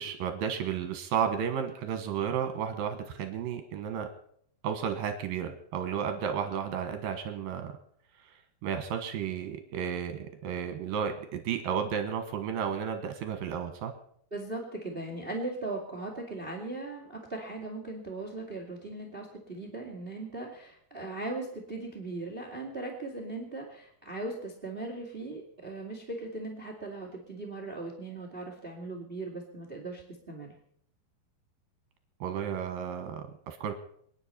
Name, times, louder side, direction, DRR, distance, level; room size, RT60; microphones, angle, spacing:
voice 1, 0.0-4.1 4.6-7.8 8.6-13.9 32.2-33.7, right 8 dB, 65° right, 7 dB, 2.6 m, -33 dB
voice 2, 14.3-30.5, right 2 dB, 40° right, 1 dB, 0.7 m, -38 dB
27.5 x 10.0 x 4.4 m, 0.66 s
omnidirectional pair, 5.3 m